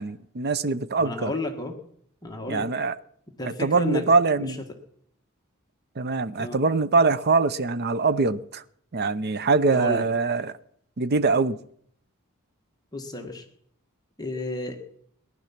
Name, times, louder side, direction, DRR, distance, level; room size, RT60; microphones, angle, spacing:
voice 1, 0.0-1.3 2.5-2.9 3.4-4.6 6.0-8.6 8.9-10.6 11.0-11.6, right 4 dB, 50° right, 0.7 m, -23 dB
voice 2, 1.0-1.7 2.2-2.7 3.4-4.0 4.4-4.6 6.4-6.6 9.7-10.1 12.9-13.4 14.2-14.8, left 2 dB, 20° left, 1.6 m, -32 dB
19.0 x 11.0 x 5.9 m
head